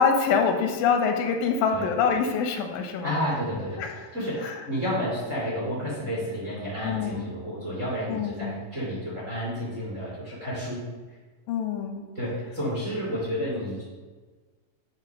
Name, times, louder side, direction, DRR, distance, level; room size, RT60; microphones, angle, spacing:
voice 1, 0.0-3.1 3.8-4.1 4.4-4.6 6.8-7.3 8.1-8.6 11.5-12.0, left 6 dB, 85° left, 5 dB, 2.4 m, -25 dB
voice 2, 3.0-3.8 4.1-10.8 12.1-13.8, equal, 30° right, -7 dB, 1.5 m, -30 dB
7.7 x 2.9 x 5.1 m, 1.4 s
omnidirectional pair, 4.0 m